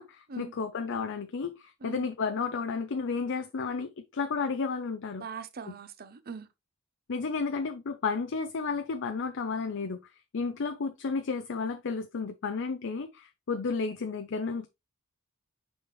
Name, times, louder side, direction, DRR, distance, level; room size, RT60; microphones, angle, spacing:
voice 1, 0.0-5.3 5.7-5.8 7.1-10.0 10.3-14.7, left 4 dB, 60° left, 0.6 m, -32 dB
voice 2, 5.2-6.5, right 5 dB, 45° right, 0.7 m, -41 dB
6.2 x 5.1 x 3.1 m
head